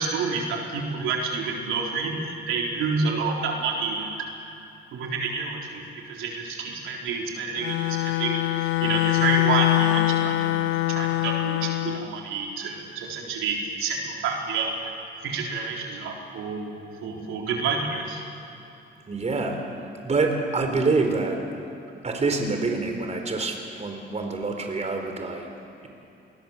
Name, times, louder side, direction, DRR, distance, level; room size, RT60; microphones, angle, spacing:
voice 1, 0.0-2.2 2.5-4.3 4.9-14.9 15.2-16.7 17.0-18.2, right 4 dB, 90° right, -1 dB, 4.0 m, -29 dB
Bowed string instrument, 7.6-12.1, left 17 dB, 85° left, 0.6 m, -24 dB
voice 2, 19.1-19.6 20.0-21.4 22.0-25.5, right 3 dB, 35° right, 4 dB, 4.1 m, -26 dB
27.5 x 21.5 x 7.4 m, 2.9 s
cardioid pair, 90°, 20 cm